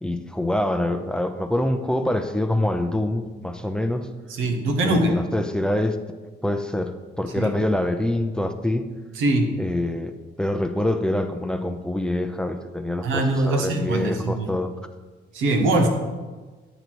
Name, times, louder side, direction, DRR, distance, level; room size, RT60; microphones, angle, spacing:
voice 1, 0.0-4.1 4.8-6.0 6.4-8.9 9.6-10.1 10.4-14.7, left 1 dB, 5° left, 8 dB, 0.5 m, -25 dB
voice 2, 4.3-5.1 7.3-7.5 9.2-9.5 13.0-14.5 15.3-15.9, right 2 dB, 90° right, 4 dB, 1.1 m, -22 dB
10.5 x 4.0 x 4.6 m, 1.3 s
cardioid pair, 90°, 20 cm